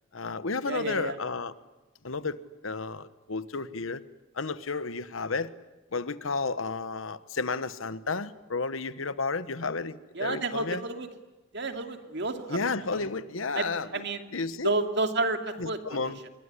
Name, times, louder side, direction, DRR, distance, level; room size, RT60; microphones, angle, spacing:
voice 1, 0.1-1.5 2.0-2.4 2.6-4.0 4.3-5.5 5.9-10.8 12.5-13.9 14.3-14.7 15.6-16.2, left 4 dB, 80° left, 1.2 m, -32 dB
voice 2, 0.6-1.2 10.1-11.1 11.5-13.1 13.5-14.2 14.6-16.3, right 2 dB, 60° right, 2.5 m, -31 dB
26.0 x 22.5 x 10.0 m
head